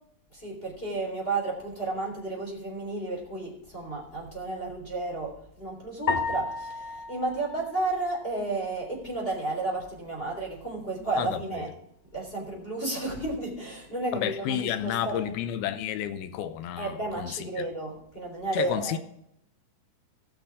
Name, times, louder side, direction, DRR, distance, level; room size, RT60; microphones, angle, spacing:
voice 1, 0.3-11.7 12.1-15.3 16.8-19.0, right 2 dB, 15° left, 3.0 m, -32 dB
sound 1, 6.1-8.5, left 4 dB, 60° left, 1.7 m, -33 dB
voice 2, 11.2-11.7 14.1-17.7 18.5-19.0, left 11 dB, 80° left, 2.5 m, -31 dB
17.5 x 6.1 x 4.9 m
omnidirectional pair, 4.7 m